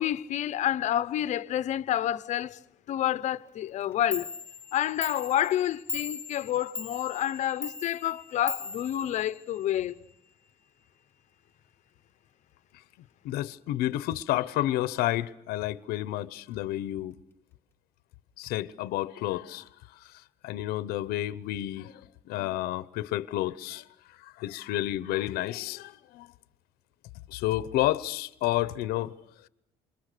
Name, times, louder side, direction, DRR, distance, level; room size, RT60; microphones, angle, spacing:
voice 1, 0.0-2.6 2.9-4.3 4.7-10.0, left 12 dB, 50° left, 0.9 m, -29 dB
Clock, 3.8-3.9 4.1-9.8, left 4 dB, 15° left, 1.1 m, -39 dB
voice 2, 13.2-17.1 18.4-19.6 20.4-21.9 22.3-23.8 24.4-26.3 27.3-29.1, left 15 dB, 90° left, 0.9 m, -30 dB
28.0 x 28.0 x 6.8 m
cardioid pair, 165°, 15 cm